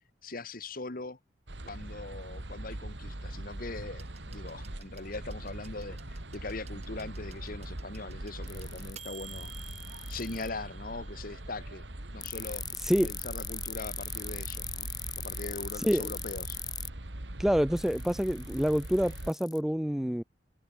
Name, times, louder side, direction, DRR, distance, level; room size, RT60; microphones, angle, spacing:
voice 1, 0.2-1.2 1.6-9.5 10.1-11.8 12.1-12.6 13.0-16.6, left 3 dB, 55° left, 1.7 m, -41 dB
sound 1, 1.5-19.3, right 1 dB, 85° right, 2.5 m, -42 dB
sound 2, 4.0-11.7 12.9-13.0, right 8 dB, 40° right, 2.6 m, -53 dB
sound 3, 8.5-10.5 12.2-16.9 17.8-19.6, left 8 dB, 25° left, 0.8 m, -39 dB
voice 2, 15.8-16.1 17.4-20.2, equal, ahead, 0.4 m, -27 dB
head